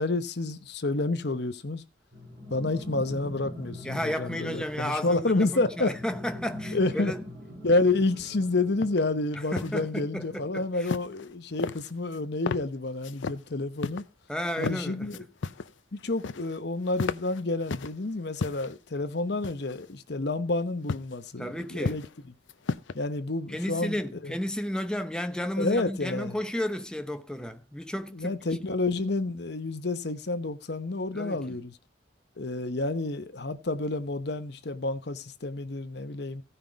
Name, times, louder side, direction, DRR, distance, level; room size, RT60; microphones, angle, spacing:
voice 1, 0.0-1.8 2.5-5.9 6.7-7.1 7.6-14.0 14.6-15.2 15.9-22.0 22.9-24.3 25.6-26.4 28.1-31.7 32.4-36.4, left 2 dB, 60° left, 0.9 m, -29 dB
sound 1, 2.1-9.3, left 1 dB, 60° right, 7.2 m, -42 dB
voice 2, 3.8-7.3 9.5-10.9 14.3-15.2 21.4-22.0 23.5-28.4 31.1-31.6, equal, 5° left, 0.8 m, -33 dB
sound 2, 8.8-9.0 9.3-9.8 10.8-11.3 11.6-12.2 12.5-12.7 13.0-13.4 13.8-14.0 14.5-14.8 15.1-15.7 16.0-16.6 16.9-17.9 18.4-18.8 19.4-19.9 20.9-21.1 21.6-22.2 22.5-23.0, left 4 dB, 80° left, 0.6 m, -33 dB
15.5 x 5.6 x 5.1 m
head